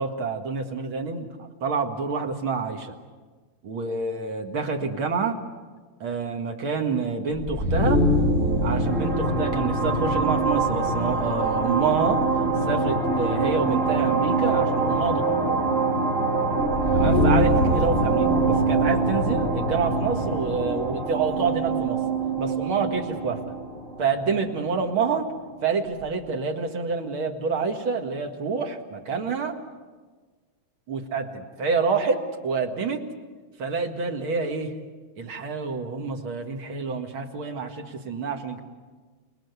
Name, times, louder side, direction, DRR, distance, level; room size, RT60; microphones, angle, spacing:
voice 1, 0.0-2.9 3.6-5.4 6.0-8.0 8.6-12.2 12.6-15.6 16.9-22.0 22.4-23.5 24.0-25.3 25.6-29.6 30.9-33.1 33.6-34.7 35.2-38.6, right 5 dB, 90° right, 3 dB, 2.8 m, -27 dB
sound 1, 7.3-25.0, right 2 dB, 35° right, 3.7 m, -23 dB
29.0 x 19.5 x 8.2 m, 1.4 s
omnidirectional pair, 2.2 m